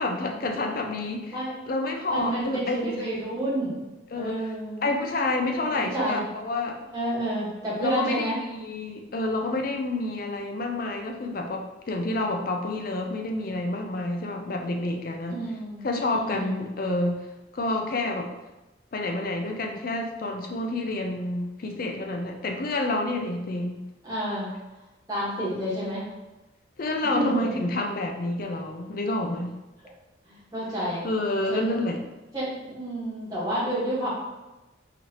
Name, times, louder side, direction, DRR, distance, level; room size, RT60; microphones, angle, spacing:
voice 1, 0.0-1.4 1.7-2.9 4.1-4.4 4.8-6.8 7.8-15.4 15.8-17.3 17.5-18.3 18.9-23.8 26.8-29.6 31.0-32.0, left 2 dB, 45° left, 3 dB, 0.4 m, -29 dB
voice 2, 2.1-4.9 5.7-6.2 6.9-8.4 15.3-15.8 16.1-16.6 24.0-24.5 25.1-26.0 27.0-27.7 30.2-31.1 31.5-31.8 32.3-34.1, right 1 dB, 20° right, -9 dB, 1.4 m, -30 dB
4.0 x 3.1 x 2.9 m, 1.0 s
head